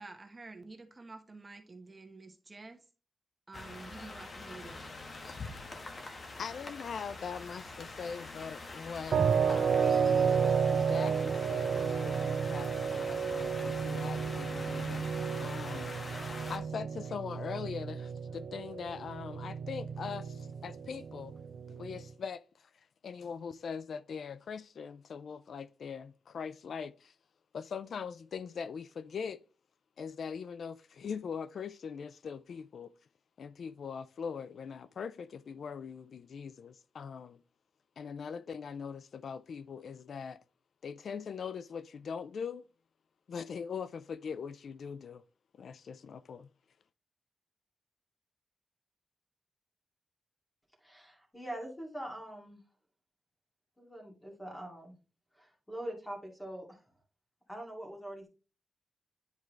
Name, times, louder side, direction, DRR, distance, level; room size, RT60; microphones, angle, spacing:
voice 1, 0.0-2.8 3.5-4.9, right 3 dB, 25° right, 1.2 m, -49 dB
sound 1, 3.5-16.6, left 3 dB, 45° left, 1.4 m, -45 dB
voice 2, 5.8-9.2 9.5-15.9 16.5-21.3 21.7-27.2 27.5-29.4 30.0-32.9 33.4-37.4 38.0-40.4 40.8-42.6 43.3-45.2 45.5-46.5, left 6 dB, 70° left, 0.3 m, -42 dB
sound 2, 9.1-22.1, right 6 dB, 70° right, 0.5 m, -32 dB
voice 3, 50.8-52.6 53.8-55.0 55.3-56.8 57.5-58.3, right 1 dB, 10° left, 2.4 m, -43 dB
10.5 x 4.6 x 3.2 m
wide cardioid pair, 130°, 0 cm